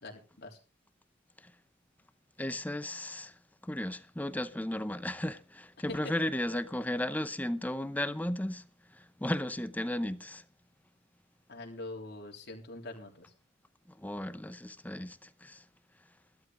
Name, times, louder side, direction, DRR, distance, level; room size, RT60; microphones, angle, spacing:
voice 1, 0.0-0.6 5.9-6.1 11.5-13.3, left 2 dB, 60° left, 3.4 m, -43 dB
voice 2, 2.4-3.4 3.6-8.7 8.9-10.4 13.9-15.6, left 1 dB, 10° left, 0.7 m, -35 dB
15.0 x 12.5 x 3.8 m
head